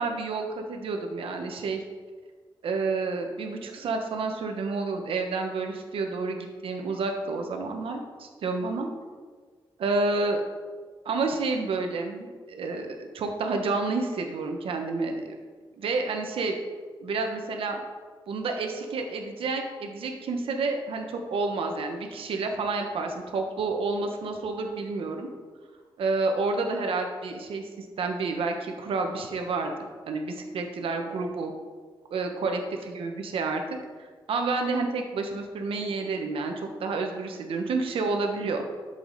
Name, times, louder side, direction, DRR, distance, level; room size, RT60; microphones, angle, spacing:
voice 1, 0.0-1.8 2.6-8.9 9.8-10.4 11.0-15.3 15.8-16.6 17.0-17.8 18.3-25.3 26.0-29.7 30.1-31.5 32.1-33.6 34.3-38.6, right 3 dB, 80° right, 4 dB, 1.3 m, -29 dB
11.5 x 7.1 x 4.2 m, 1.5 s
wide cardioid pair, 165°, 9 cm